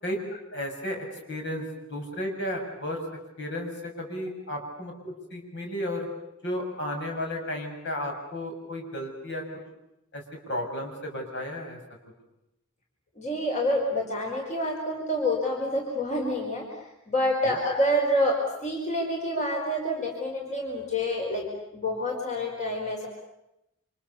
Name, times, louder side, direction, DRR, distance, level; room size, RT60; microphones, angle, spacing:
voice 1, 0.0-3.0 3.4-6.1 6.4-9.4 10.1-11.8 17.4-17.5, left 1 dB, 60° left, 2 dB, 6.9 m, -33 dB
voice 2, 13.2-16.6 17.1-21.4 21.7-23.1, left 1 dB, 35° left, 0 dB, 5.0 m, -27 dB
29.5 x 27.0 x 7.1 m, 0.87 s
head